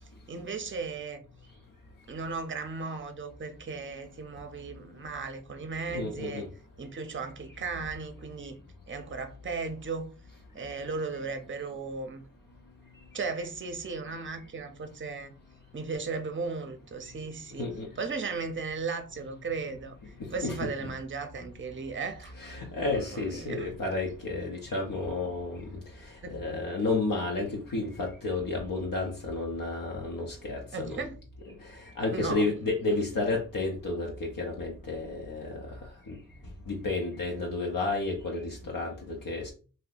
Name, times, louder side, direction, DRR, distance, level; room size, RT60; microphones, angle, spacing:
voice 1, 0.3-1.2 2.1-6.4 6.8-8.6 8.9-10.1 10.5-12.2 13.1-15.3 15.7-17.7 18.0-19.9 20.3-22.5 22.9-23.7 26.2-26.6 30.7-31.2 32.1-32.5, right 4 dB, 35° right, 0.5 m, -36 dB
voice 2, 5.9-6.5 17.6-17.9 20.2-20.9 22.4-25.8 26.1-31.0 31.6-35.8 36.1-36.2 36.7-39.5, left 3 dB, 75° left, 0.6 m, -32 dB
2.7 x 2.1 x 3.8 m
wide cardioid pair, 50°, 34 cm